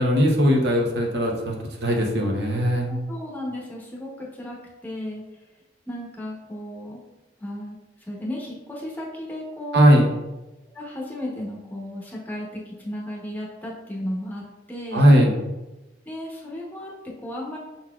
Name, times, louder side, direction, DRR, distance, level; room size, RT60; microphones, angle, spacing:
voice 1, 0.0-1.6 1.8-2.9 9.7-10.1 14.9-15.3, equal, 60° right, 0 dB, 0.7 m, -18 dB
voice 2, 2.9-5.2 5.9-7.0 7.4-9.8 10.7-14.4 14.7-15.1 16.1-17.6, left 1 dB, 10° left, -3 dB, 0.8 m, -34 dB
5.7 x 4.0 x 2.3 m, 1.0 s
head